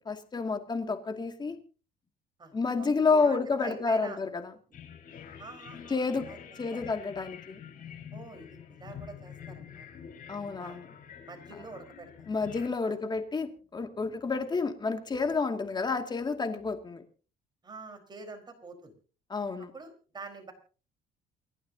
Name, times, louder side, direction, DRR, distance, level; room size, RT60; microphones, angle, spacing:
voice 1, 0.0-1.6 2.5-4.4 5.9-6.3 6.6-7.6 10.3-10.9 12.3-17.0 19.3-19.7, left 4 dB, 25° left, 6 dB, 2.4 m, -30 dB
voice 2, 2.4-4.2 5.4-6.4 6.7-6.8 8.1-9.8 10.6-10.8 11.2-12.3 12.8-13.0 17.6-18.9 19.7-20.5, right 3 dB, 25° right, 4 dB, 4.7 m, -46 dB
sound 1, 4.7-12.7, left 8 dB, 55° left, 5.1 m, -47 dB
29.0 x 11.0 x 2.8 m, 0.38 s
cardioid pair, 110°, 17 cm